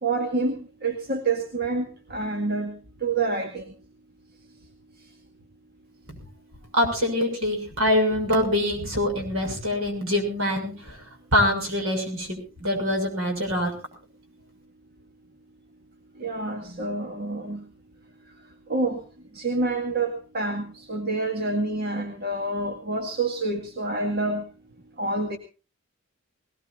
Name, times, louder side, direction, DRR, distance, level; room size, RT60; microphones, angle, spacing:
voice 1, 0.0-2.8 3.0-3.6 16.2-17.6 18.7-19.0 19.3-24.4 25.0-25.4, right 3 dB, 45° right, 3 dB, 2.0 m, -27 dB
voice 2, 6.7-11.0 11.3-13.7, left 1 dB, 75° right, 3 dB, 6.7 m, -24 dB
20.5 x 19.5 x 2.6 m, 0.33 s
head